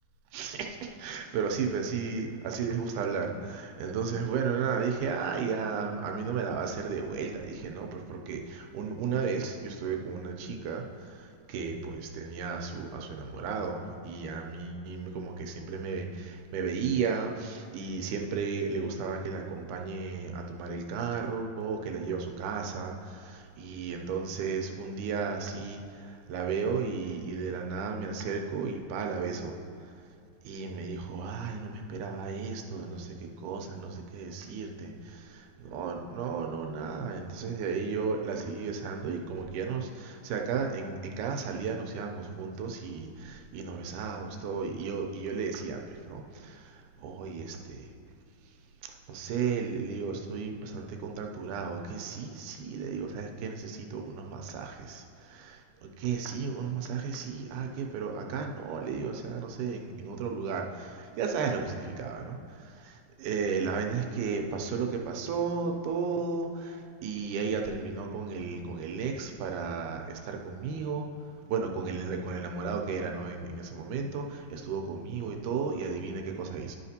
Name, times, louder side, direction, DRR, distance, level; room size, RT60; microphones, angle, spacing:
voice 1, 0.3-11.2 11.5-25.8 26.1-29.5 30.4-33.1 33.4-46.6 47.0-47.9 49.1-62.4 62.8-62.9 63.2-71.1 71.5-76.8, right 5 dB, 85° right, 2 dB, 2.1 m, -34 dB
11.5 x 5.8 x 2.8 m, 2.4 s
omnidirectional pair, 3.6 m